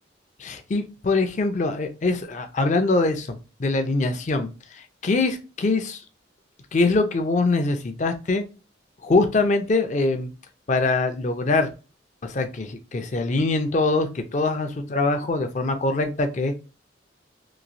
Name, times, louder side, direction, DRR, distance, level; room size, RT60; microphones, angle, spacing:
voice 1, 0.4-6.0 6.7-8.4 9.0-10.3 10.7-11.7 12.2-16.6, left 3 dB, 40° left, 6 dB, 0.4 m, -23 dB
3.0 x 2.8 x 2.5 m, 0.32 s
head